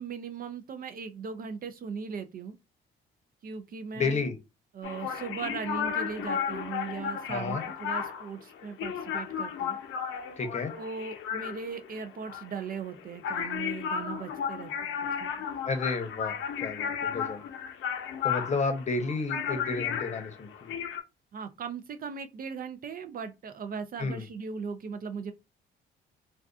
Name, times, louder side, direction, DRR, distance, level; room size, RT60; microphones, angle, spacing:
voice 1, 0.0-2.6 3.4-4.3 4.7-9.8 10.7-14.9 15.2-15.3 21.3-25.3, right 5 dB, 45° right, 0.4 m, -38 dB
voice 2, 4.0-4.4 7.3-7.6 10.4-10.7 15.6-17.4 18.2-20.7 24.0-24.3, left 4 dB, 35° left, 0.8 m, -31 dB
sound 1, 4.8-21.0, left 8 dB, 80° left, 0.6 m, -34 dB
2.4 x 2.3 x 2.3 m
cardioid pair, 90°, 20 cm